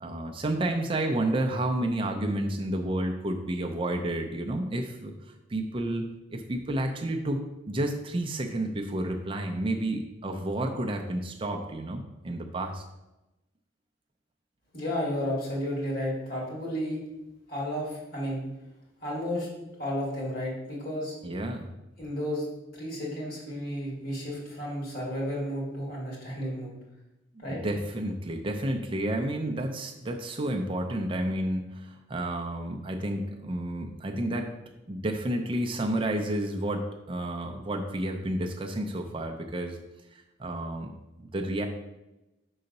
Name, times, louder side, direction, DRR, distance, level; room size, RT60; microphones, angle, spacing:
voice 1, 0.0-5.1 5.5-6.0 6.3-7.4 7.7-12.8 21.2-21.7 27.5-34.5 34.9-39.8 40.1-40.9 41.2-41.7, right 1 dB, 25° right, 3 dB, 0.5 m, -30 dB
voice 2, 14.7-17.0 17.5-18.4 19.0-19.5 19.8-21.2 22.0-22.5 22.7-26.7 27.4-27.6, equal, 50° left, -4 dB, 2.3 m, -32 dB
5.6 x 3.9 x 5.3 m, 0.98 s
head